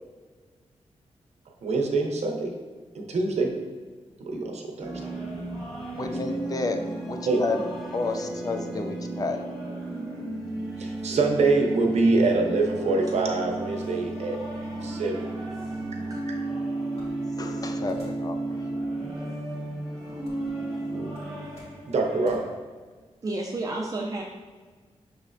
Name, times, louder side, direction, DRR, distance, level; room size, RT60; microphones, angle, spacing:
voice 1, 1.5-2.5 2.9-3.5 4.2-5.1 6.2-6.4 7.2-7.4 10.8-14.4 14.8-15.3 15.9-16.4 20.9-21.5 21.9-22.4, right 3 dB, 70° right, 2 dB, 0.7 m, -25 dB
sound 1, 4.8-22.5, right 2 dB, ahead, 1.4 m, -33 dB
voice 2, 6.0-7.7 7.9-9.5 17.4-18.6, left 3 dB, 30° left, 6 dB, 0.4 m, -31 dB
voice 3, 15.7-16.2 20.4-20.5 20.9-21.0 23.2-24.2, right 2 dB, 30° right, -2 dB, 0.4 m, -32 dB
sound 2, 17.0-18.3 18.8-19.0 19.7-20.7 21.0-22.4, equal, 60° left, 1.5 m, -52 dB
6.1 x 3.2 x 2.5 m, 1.4 s
wide cardioid pair, 125°, 12 cm